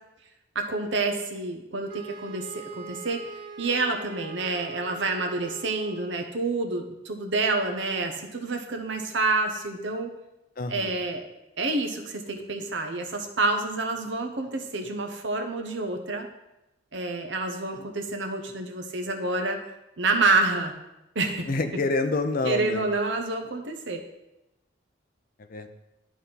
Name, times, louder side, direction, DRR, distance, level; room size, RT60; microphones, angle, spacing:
voice 1, 0.5-3.3 3.6-10.1 10.7-11.2 11.6-16.3 16.9-19.6 20.0-20.7 21.1-21.5 22.4-24.0, right 3 dB, 60° right, 4 dB, 0.9 m, -28 dB
Wind instrument woodwind instrument, 1.9-6.3, right 4 dB, 45° right, 0.5 m, -42 dB
voice 2, 10.6-11.0 21.5-22.8 25.5-25.7, left 3 dB, 45° left, 7 dB, 0.5 m, -27 dB
11.5 x 4.1 x 3.9 m, 0.93 s
head